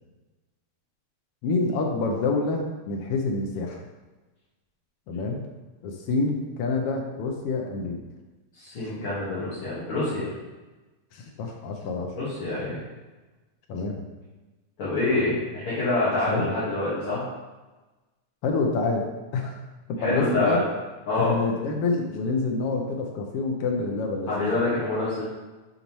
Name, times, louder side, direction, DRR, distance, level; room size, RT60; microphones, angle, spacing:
voice 1, 1.4-3.8 5.1-5.4 5.8-8.0 8.8-8.9 11.1-12.1 13.7-14.1 16.3-16.5 18.4-19.1 19.3-19.6 19.9-20.6 21.1-24.5, left 3 dB, 90° left, 1 dB, 1.3 m, -27 dB
voice 2, 8.5-10.3 12.1-12.8 14.8-17.2 20.0-20.6 21.1-21.3 24.3-25.2, left 2 dB, 50° left, -11 dB, 2.4 m, -26 dB
8.8 x 4.1 x 3.1 m, 1.2 s
omnidirectional pair, 3.4 m